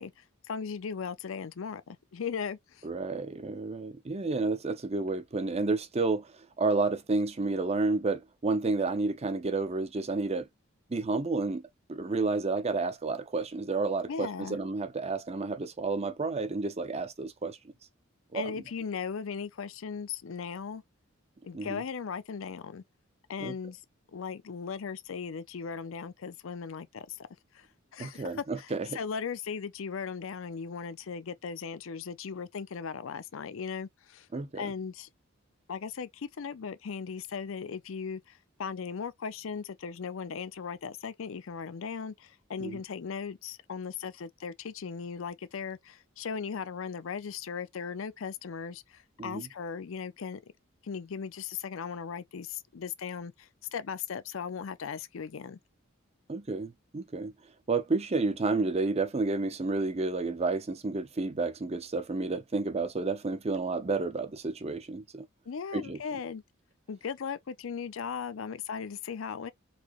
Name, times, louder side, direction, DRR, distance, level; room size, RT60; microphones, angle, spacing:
voice 1, 0.0-2.9 14.1-14.6 18.3-20.8 21.4-22.8 23.3-23.8 24.1-27.3 27.5-27.7 27.9-34.3 34.6-35.1 35.7-50.4 50.8-55.6 65.5-66.4 66.9-69.5, left 6 dB, 70° left, 0.5 m, -38 dB
voice 2, 2.8-10.5 10.9-17.6 18.3-18.5 21.5-21.8 23.4-23.5 28.0-28.9 34.3-34.7 42.6-42.8 49.2-49.5 56.3-57.3 57.7-65.3 65.7-66.0, right 3 dB, 30° right, 0.6 m, -31 dB
4.2 x 2.8 x 3.0 m
head